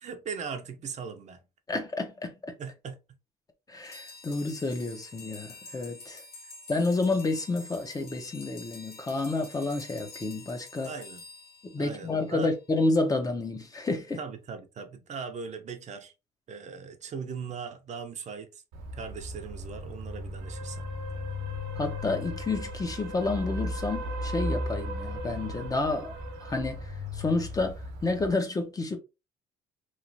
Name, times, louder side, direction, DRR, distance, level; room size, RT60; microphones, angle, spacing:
voice 1, 0.0-1.4 2.6-3.0 6.4-6.5 10.8-11.2 11.8-12.5 14.2-16.1 16.5-18.6 18.9-20.9, right 5 dB, 45° right, 0.5 m, -39 dB
voice 2, 1.7-2.5 3.7-6.2 6.7-10.9 11.6-14.2 21.8-29.0, left 3 dB, 20° left, 0.5 m, -30 dB
sound 1, 3.8-12.4, left 3 dB, 65° left, 1.0 m, -48 dB
sound 2, 18.7-28.3, left 1 dB, 90° right, 0.8 m, -36 dB
3.1 x 2.3 x 2.6 m
cardioid pair, 110°, 17 cm